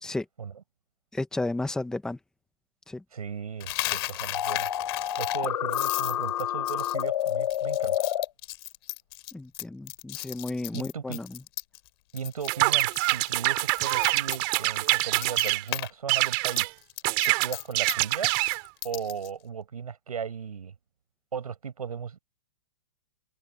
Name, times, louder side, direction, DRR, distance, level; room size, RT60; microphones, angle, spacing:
voice 1, 1.1-2.2 2.9-3.0 9.3-11.4, left 2 dB, 5° left, 1.4 m, -33 dB
voice 2, 3.1-4.7 5.2-8.1 10.7-11.2 12.1-16.7 17.2-18.3 18.8-20.7 21.3-22.2, right 7 dB, 90° right, 7.5 m, -36 dB
Coin (dropping), 3.6-11.9 12.2-12.5 12.8-15.9 16.2-19.3, left 19 dB, 45° left, 4.5 m, -36 dB
sound 1, 4.3-8.3, left 11 dB, 65° left, 2.2 m, -28 dB
sound 2, 12.5-15.6 16.1-16.7 17.0-18.6, right 30 dB, 40° right, 3.5 m, -25 dB
hypercardioid pair, 145°, 18 cm